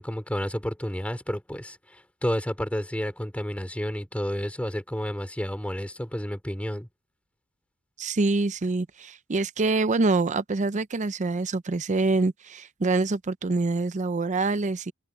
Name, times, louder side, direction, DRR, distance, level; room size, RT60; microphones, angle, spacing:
voice 1, 0.0-6.9, equal, 5° left, 2.9 m, -31 dB
voice 2, 8.0-14.9, right 3 dB, 35° right, 0.5 m, -25 dB
head